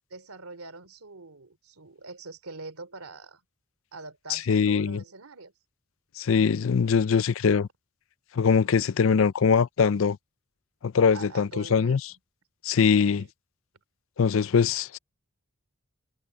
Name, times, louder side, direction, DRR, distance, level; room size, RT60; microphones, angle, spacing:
voice 1, 0.1-3.4 3.9-5.5 8.4-8.9 11.1-12.0 13.2-13.3, right 3 dB, 90° right, 3.1 m, -44 dB
voice 2, 4.3-5.0 6.2-7.7 8.4-10.2 10.8-12.0 12.6-13.2 14.2-15.0, left 6 dB, 65° left, 0.4 m, -22 dB
head